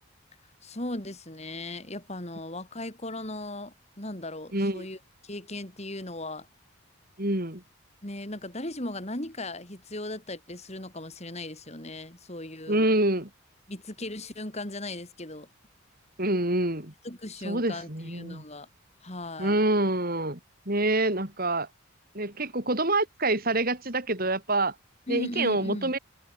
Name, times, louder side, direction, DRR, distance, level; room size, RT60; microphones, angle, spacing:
voice 1, 0.6-6.5 8.0-12.9 13.7-15.5 17.0-18.7 19.0-19.6 25.1-25.9, left 1 dB, 30° left, 3.4 m, -37 dB
voice 2, 4.5-4.9 7.2-7.6 12.7-13.3 16.2-16.9 17.4-18.4 19.4-20.4 20.7-21.7 22.1-24.7 25.1-26.0, right 2 dB, 40° right, 4.6 m, -26 dB
head